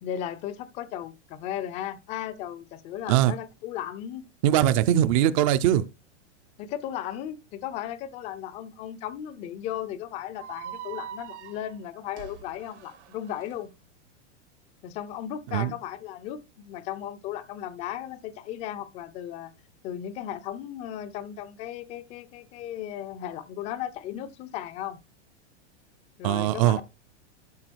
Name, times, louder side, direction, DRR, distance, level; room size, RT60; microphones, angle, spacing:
voice 1, 0.0-4.2 6.6-13.7 14.8-19.5 19.8-25.0 26.2-26.8, left 11 dB, 20° left, 0.5 m, -36 dB
voice 2, 4.4-5.8 15.5-15.7 26.2-26.8, right 12 dB, 30° right, 0.5 m, -21 dB
sound 1, 10.4-13.6, right 9 dB, 75° right, 1.6 m, -42 dB
12.0 x 4.8 x 4.5 m
supercardioid pair, 160°, 35 cm